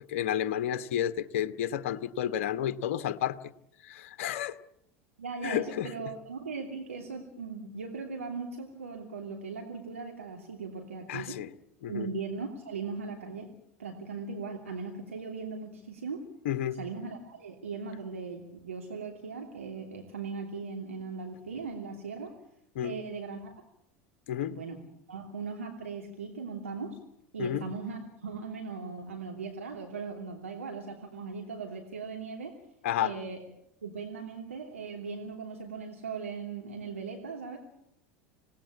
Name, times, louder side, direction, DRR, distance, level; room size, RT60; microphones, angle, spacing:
voice 1, 0.1-3.4 3.8-4.6 5.4-5.9 11.1-11.5 11.8-12.1 16.4-16.8 22.7-23.0 24.3-24.5 27.4-27.6 32.8-33.1, left 10 dB, 65° left, 12 dB, 1.2 m, -31 dB
voice 2, 5.2-11.4 11.9-13.5 13.8-16.2 16.8-22.3 22.8-23.6 24.5-24.8 25.1-27.0 27.3-32.5 33.0-33.4 33.8-37.6, right 4 dB, 85° right, 1 dB, 2.9 m, -39 dB
27.0 x 18.0 x 8.5 m, 0.76 s
figure-of-eight pair, 80°, 7 cm